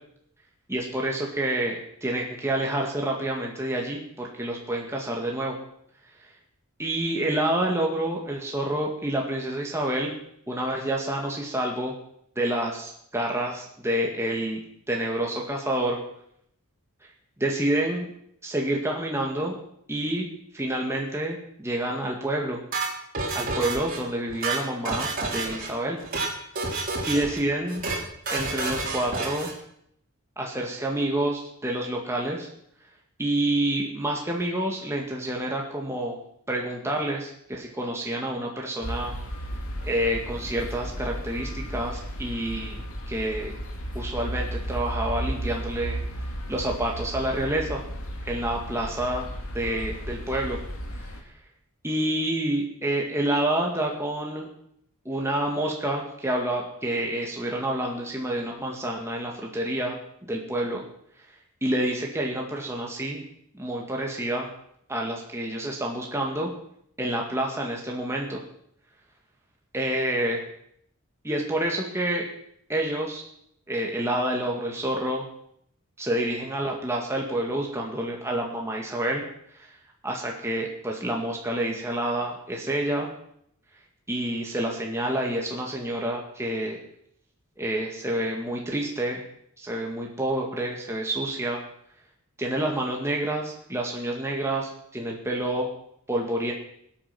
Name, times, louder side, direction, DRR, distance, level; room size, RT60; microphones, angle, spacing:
voice 1, 0.7-5.6 6.8-10.1 10.5-11.9 12.4-14.6 14.9-16.0 17.4-18.1 18.4-19.6 19.9-20.3 20.5-22.6 23.3-26.0 27.1-27.8 28.3-29.5 30.4-32.5 33.2-36.2 36.5-39.1 39.8-43.5 43.9-46.0 46.5-47.8 48.2-49.3 49.5-50.6 51.0-51.1 51.8-54.5 55.1-60.8 61.6-63.2 63.5-64.5 64.9-66.5 67.0-68.4 69.7-70.4 71.2-72.2 72.7-73.2 73.7-75.2 76.0-79.2 79.5-79.7 80.0-83.1 84.1-86.8 87.6-89.2 89.6-91.6 92.4-95.7 96.1-96.5, right 1 dB, 10° right, -1 dB, 2.0 m, -28 dB
sound 1, 22.7-24.0 24.3-25.7 26.0-26.3 26.6-27.4 27.7-28.0 28.3-29.5, right 3 dB, 40° right, 3.5 m, -29 dB
sound 2, 38.8-51.2, equal, 65° left, 2.4 m, -34 dB
19.5 x 8.9 x 6.0 m, 0.72 s
head